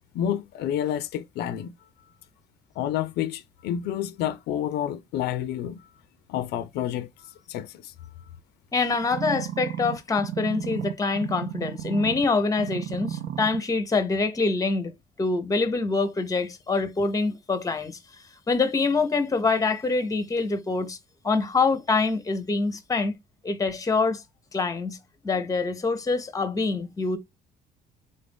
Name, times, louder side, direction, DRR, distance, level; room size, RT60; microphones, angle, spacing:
voice 1, 0.1-1.7 2.8-5.8 6.3-7.9, left 10 dB, 75° left, 0.5 m, -29 dB
voice 2, 8.7-14.9 15.2-18.0 18.5-21.0 21.2-23.1 23.4-24.2 24.5-25.0 25.2-27.2, left 3 dB, 20° left, 0.7 m, -25 dB
sound 1, 9.1-12.3 12.6-13.6 14.2-14.3, right 10 dB, 65° right, 0.5 m, -33 dB
3.8 x 2.6 x 3.4 m
cardioid pair, 110°, 17 cm